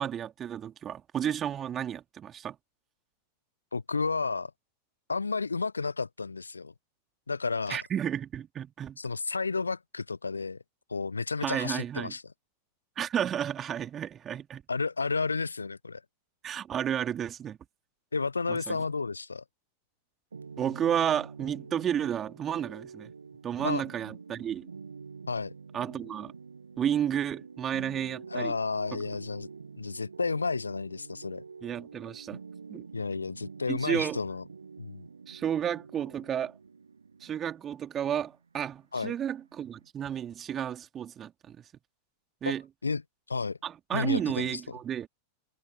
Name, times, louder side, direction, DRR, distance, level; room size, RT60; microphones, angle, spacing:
voice 1, 0.0-2.6 7.7-9.0 11.4-12.1 13.0-14.6 16.4-17.6 18.5-18.8 20.6-23.1 23.4-24.7 25.7-26.3 26.8-28.5 31.6-32.4 32.7-32.9 33.7-34.2 35.3-36.5 37.2-41.6 42.4-42.6 43.6-45.1, right 9 dB, 25° right, 3.1 m, -32 dB
voice 2, 3.7-4.5 5.1-6.7 7.3-7.8 9.0-10.6 10.9-12.2 14.7-16.0 18.1-19.4 23.6-23.8 25.3-25.5 28.3-29.5 29.8-31.4 32.9-34.4 34.8-35.0 38.9-39.1 42.5-42.6 42.8-43.0 43.3-43.6 43.9-44.8, left 4 dB, 75° left, 0.7 m, -31 dB
sound 1, 20.3-39.9, right 5 dB, 75° right, 2.1 m, -47 dB
figure-of-eight pair, 90°, 0 cm